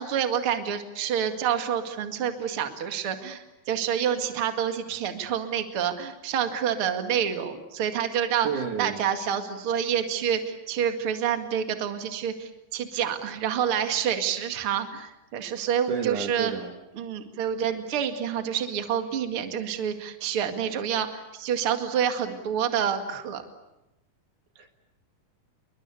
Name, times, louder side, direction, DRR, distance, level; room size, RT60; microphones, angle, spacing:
voice 1, 0.0-16.5 17.0-23.4, right 8 dB, 40° right, 7 dB, 2.5 m, -28 dB
voice 2, 8.4-9.0 15.9-16.8 24.6-24.7, right 6 dB, 60° right, 6 dB, 2.9 m, -30 dB
29.0 x 23.5 x 8.4 m, 0.92 s
omnidirectional pair, 4.3 m